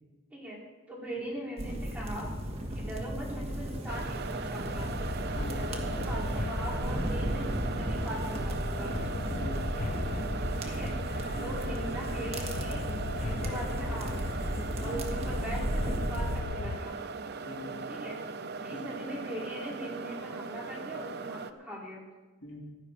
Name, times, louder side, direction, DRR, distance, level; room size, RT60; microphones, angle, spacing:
voice 1, 0.9-2.3 2.7-4.9 5.5-9.0 10.6-10.9 11.4-14.4 14.8-17.0 17.9-18.2 18.6-22.0, equal, 10° right, -5 dB, 4.1 m, -40 dB
sound 1, 1.6-16.4, equal, 30° right, 1.7 m, -35 dB
sound 2, 3.9-21.5, right 4 dB, 55° right, 0.7 m, -39 dB
sound 3, 4.7-16.8, left 3 dB, 40° left, 0.4 m, -39 dB
voice 2, 9.4-9.8 11.4-11.5 14.8-15.3 17.5-17.8 18.7-18.9 22.4-22.6, left 1 dB, 70° left, 0 dB, 2.4 m, -42 dB
15.5 x 12.0 x 4.6 m, 1.2 s
head